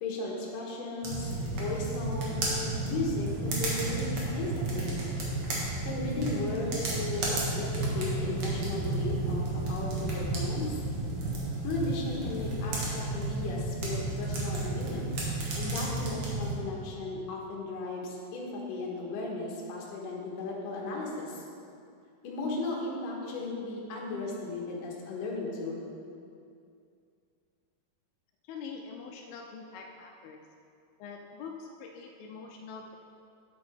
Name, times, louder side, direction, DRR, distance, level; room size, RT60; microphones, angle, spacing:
voice 1, 0.0-5.0 5.9-10.8 11.6-15.1 15.6-21.4 22.2-25.9, left 2 dB, 70° left, -2 dB, 2.8 m, -36 dB
sound 1, 1.0-16.5, right 2 dB, 55° right, 1.7 m, -32 dB
voice 2, 28.5-30.4 31.0-33.0, left 5 dB, 90° left, 1 dB, 2.5 m, -44 dB
9.6 x 8.1 x 3.4 m, 2.4 s
omnidirectional pair, 4.2 m